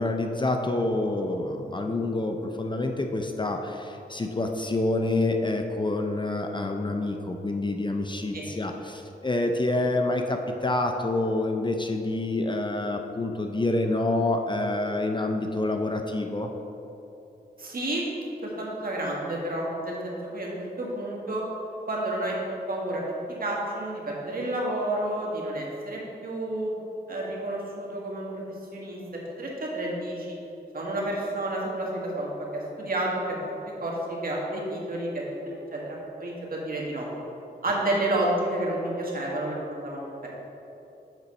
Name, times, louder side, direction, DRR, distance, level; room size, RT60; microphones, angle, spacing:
voice 1, 0.0-16.5, left 2 dB, 25° left, 4 dB, 0.5 m, -27 dB
voice 2, 17.6-18.0 18.4-21.4 21.9-22.4 22.7-23.0 23.4-26.7 27.1-28.4 28.7-29.0 29.4-30.4 30.7-33.2 33.8-33.9 34.2-35.2 35.7-37.1 37.6-40.3, right 1 dB, 55° right, -3 dB, 1.7 m, -30 dB
8.1 x 4.0 x 5.4 m, 3.0 s
cardioid pair, 70°, 18 cm